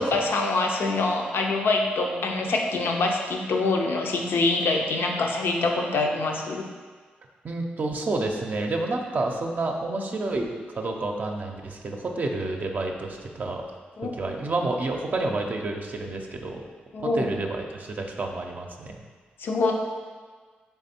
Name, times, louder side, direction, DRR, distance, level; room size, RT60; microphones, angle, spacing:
voice 1, 0.0-6.6 14.0-14.1 16.9-17.3 19.4-19.7, left 3 dB, 75° left, 2 dB, 0.6 m, -25 dB
voice 2, 7.4-13.6 14.2-16.6 17.1-19.0, right 2 dB, 50° right, 2 dB, 0.5 m, -29 dB
3.5 x 3.4 x 4.3 m, 1.5 s
cardioid pair, 60°, 4 cm